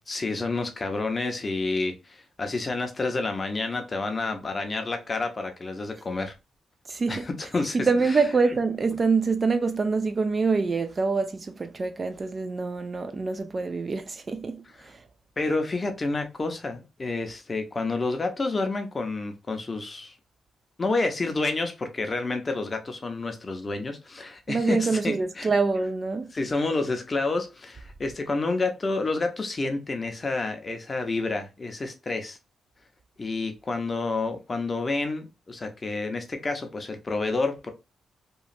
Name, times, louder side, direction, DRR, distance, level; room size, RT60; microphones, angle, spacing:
voice 1, 0.1-6.3 7.1-8.2 15.4-20.2 20.8-25.5 26.3-32.4 33.2-37.7, left 3 dB, 30° left, 0.6 m, -29 dB
voice 2, 6.9-7.3 7.7-15.0 24.5-26.3, right 4 dB, 30° right, 0.3 m, -25 dB
2.9 x 2.3 x 2.5 m
cardioid pair, 120°, 0 cm